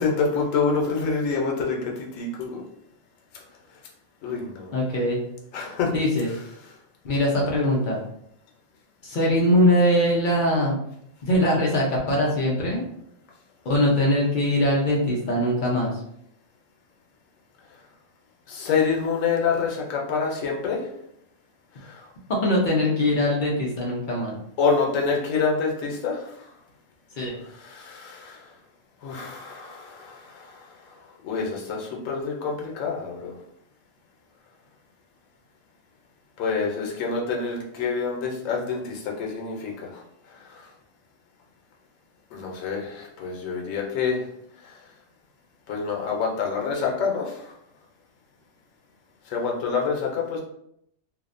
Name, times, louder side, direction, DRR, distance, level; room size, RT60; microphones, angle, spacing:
voice 1, 0.0-2.6 4.2-4.7 5.5-5.9 18.5-20.9 21.8-22.0 24.6-26.4 27.4-28.4 29.0-30.7 31.2-33.3 36.4-40.0 40.4-40.7 42.3-44.2 44.6-44.8 45.7-47.5 49.3-50.4, left 5 dB, 85° left, -1 dB, 1.0 m, -27 dB
voice 2, 4.7-5.2 5.9-6.3 7.0-8.0 9.0-10.8 11.2-12.8 13.6-15.9 22.4-24.3 27.2-27.4, left 1 dB, 55° left, -3 dB, 0.6 m, -22 dB
2.7 x 2.0 x 2.4 m, 0.73 s
omnidirectional pair, 1.3 m